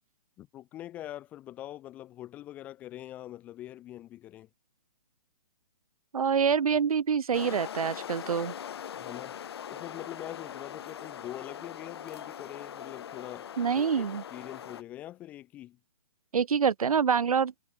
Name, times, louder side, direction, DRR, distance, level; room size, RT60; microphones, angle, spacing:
voice 1, 0.4-4.5 9.0-9.4 9.7-15.8, left 13 dB, 10° left, 0.6 m, -44 dB
voice 2, 6.1-8.5 13.6-14.2 16.3-17.5, right 6 dB, 80° right, 1.5 m, -26 dB
sound 1, 7.3-14.8, left 9 dB, 45° left, 1.0 m, -41 dB
hypercardioid pair, 170°, 18 cm